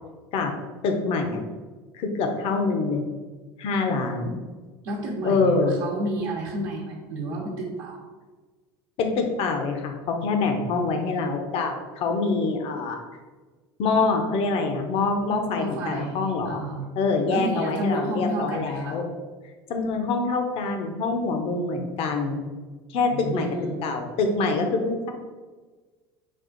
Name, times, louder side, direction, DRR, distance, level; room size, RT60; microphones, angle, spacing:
voice 1, 0.8-1.4 1.9-3.1 3.6-4.4 5.2-5.8 9.0-13.0 13.8-16.6 17.0-19.0 19.7-22.4 22.9-23.5 23.8-25.1, left 3 dB, 55° left, 4 dB, 0.8 m, -25 dB
voice 2, 4.8-8.0 15.6-16.9 17.3-19.0 23.1-23.8, right 1 dB, 75° right, -4 dB, 0.9 m, -31 dB
5.3 x 2.4 x 3.9 m, 1.4 s
supercardioid pair, 90°, 11 cm